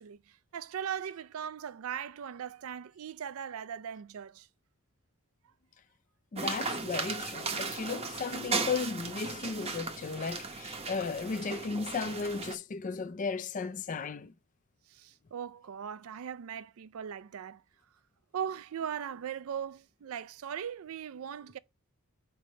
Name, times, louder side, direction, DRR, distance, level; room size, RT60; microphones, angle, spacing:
voice 1, 0.0-4.5 14.9-17.6 18.3-21.6, right 8 dB, 70° right, 0.4 m, -39 dB
voice 2, 6.3-14.3, left 4 dB, 35° left, 0.4 m, -35 dB
sound 1, 6.4-12.6, right 4 dB, 30° right, 0.7 m, -36 dB
5.1 x 3.3 x 5.5 m
head